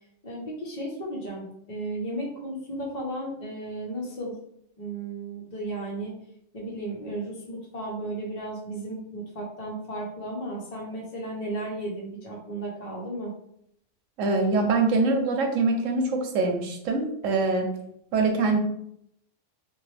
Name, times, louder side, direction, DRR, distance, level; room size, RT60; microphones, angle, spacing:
voice 1, 0.2-4.4 4.8-6.1 6.5-13.3, right 1 dB, 40° left, -4 dB, 0.7 m, -34 dB
voice 2, 14.2-17.7 18.1-18.6, right 3 dB, 90° right, 3 dB, 1.0 m, -24 dB
3.0 x 2.4 x 3.2 m, 0.73 s
omnidirectional pair, 1.3 m